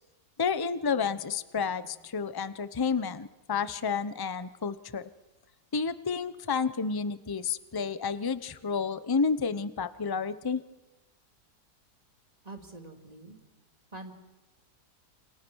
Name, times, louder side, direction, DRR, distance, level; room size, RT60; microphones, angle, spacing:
voice 1, 0.4-5.1 5.7-10.6, left 5 dB, 20° left, 13 dB, 0.6 m, -30 dB
voice 2, 12.4-13.4 13.9-14.1, right 2 dB, 20° right, 4 dB, 3.0 m, -45 dB
29.5 x 27.5 x 6.4 m, 1.1 s
omnidirectional pair, 1.8 m